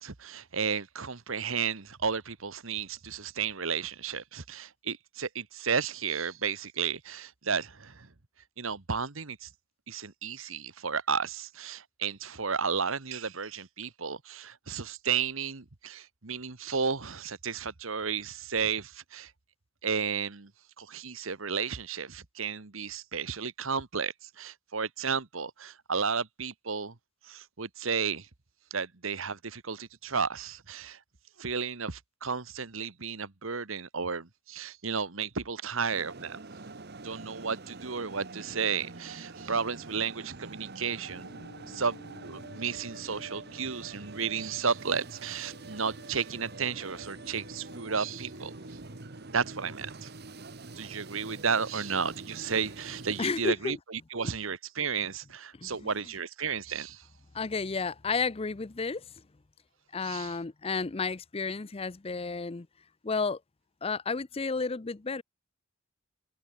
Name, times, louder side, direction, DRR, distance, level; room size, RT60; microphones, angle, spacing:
voice 1, 0.0-8.1 8.6-9.5 9.9-19.3 19.8-20.5 20.8-26.9 27.3-28.3 28.7-31.0 31.4-36.4 37.0-41.3 41.7-48.5 49.3-50.1 50.8-57.0 60.0-60.3, right 6 dB, 70° right, 1.4 m, -33 dB
sound 1, 35.9-53.2, right 3 dB, 50° right, 1.4 m, -45 dB
sound 2, 41.1-50.1, left 1 dB, 50° left, 2.5 m, -55 dB
voice 2, 53.2-53.8 55.6-55.9 57.3-59.0 59.9-62.7 63.0-63.4 63.8-65.2, left 4 dB, 30° left, 0.6 m, -32 dB
open air
head